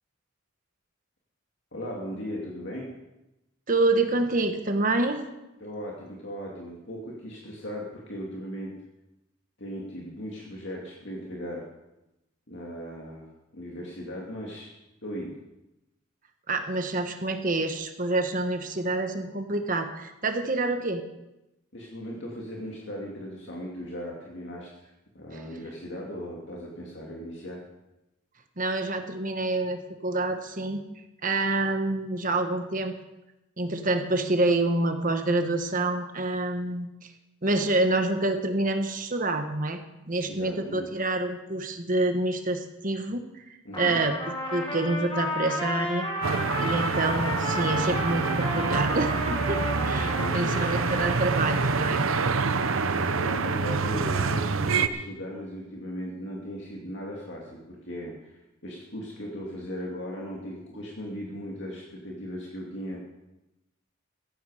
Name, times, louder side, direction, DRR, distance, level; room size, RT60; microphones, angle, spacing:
voice 1, 1.7-2.9 5.6-8.7 9.6-11.6 12.5-14.7 15.0-15.4 21.7-24.9 25.1-27.6 40.3-40.9 43.6-44.0 49.9-50.7 52.8-63.0, equal, 60° left, -2 dB, 2.5 m, -38 dB
voice 2, 3.7-5.2 16.5-21.0 25.3-25.4 28.6-30.8 31.2-32.9 33.6-37.1 37.4-39.8 40.1-44.2 44.5-46.1 46.6-52.1, right 2 dB, 40° right, 6 dB, 1.3 m, -27 dB
Trumpet, 43.7-51.6, left 1 dB, 25° left, 2.1 m, -33 dB
sound 1, 46.2-54.9, right 4 dB, 75° right, 0.9 m, -26 dB
16.5 x 14.0 x 5.0 m, 0.94 s
head